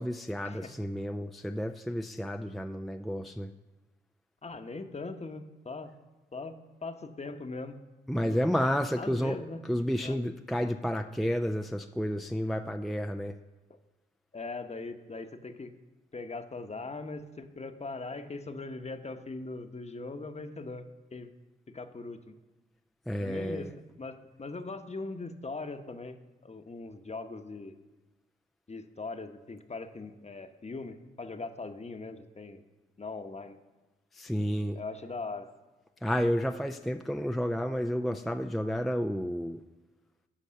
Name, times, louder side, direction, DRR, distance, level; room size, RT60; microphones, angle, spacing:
voice 1, 0.0-3.5 8.1-9.4 9.7-13.4 23.1-23.7 34.1-34.8 36.0-39.6, equal, ahead, 6 dB, 0.4 m, -31 dB
voice 2, 4.4-5.9 6.3-7.8 8.2-8.5 9.0-9.6 10.0-10.2 14.3-15.7 16.1-20.9 21.1-21.3 21.7-22.3 23.2-23.7 24.0-26.2 26.4-27.7 28.7-32.6 33.0-33.6 34.7-35.5, left 3 dB, 35° left, 8 dB, 1.0 m, -40 dB
10.0 x 5.2 x 6.4 m, 1.1 s
supercardioid pair, 40°, 20 cm